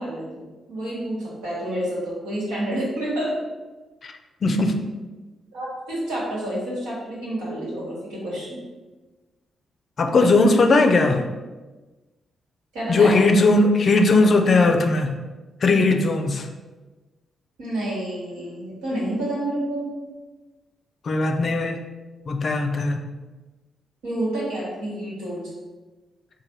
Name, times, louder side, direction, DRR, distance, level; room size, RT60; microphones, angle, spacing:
voice 1, 0.0-3.3 5.5-8.6 12.7-13.2 17.6-19.9 24.0-25.5, right 1 dB, 80° right, -7 dB, 1.2 m, -29 dB
voice 2, 4.4-4.8 10.0-11.3 12.9-15.2 15.6-16.5 21.0-21.8 22.3-23.1, left 3 dB, 55° left, 5 dB, 0.4 m, -18 dB
3.2 x 2.2 x 4.1 m, 1.2 s
hypercardioid pair, 40°, 0 cm